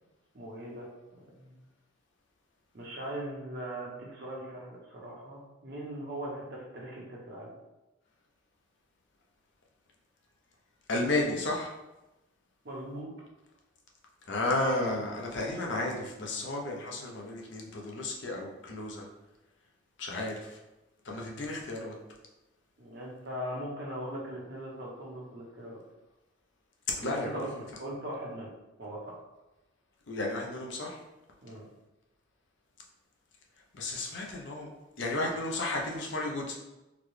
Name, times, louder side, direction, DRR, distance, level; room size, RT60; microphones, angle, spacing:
voice 1, 0.3-0.9 1.4-1.6 2.7-7.5 12.6-13.1 22.8-25.8 27.0-27.5 27.8-28.5 28.8-29.2 31.4-31.6, right 1 dB, 55° right, -3 dB, 0.9 m, -40 dB
voice 2, 10.9-11.7 14.3-19.1 20.0-20.6 21.0-21.9 26.9-27.6 30.1-31.0 33.7-34.7 35.0-36.5, left 2 dB, 65° left, -1 dB, 0.6 m, -33 dB
3.9 x 2.2 x 3.1 m, 1.0 s
head